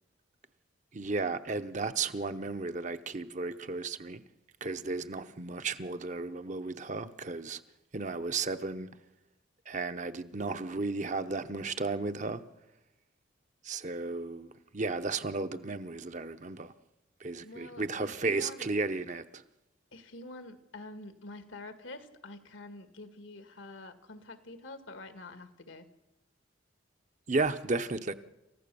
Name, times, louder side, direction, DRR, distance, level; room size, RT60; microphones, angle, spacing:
voice 1, 0.9-4.2 4.6-7.6 7.9-8.9 9.7-12.4 13.6-16.7 17.2-19.4 27.3-28.1, right 3 dB, 40° right, 0.8 m, -34 dB
voice 2, 17.4-18.7 19.9-25.9, left 2 dB, 80° left, 1.8 m, -47 dB
28.0 x 15.0 x 6.9 m
head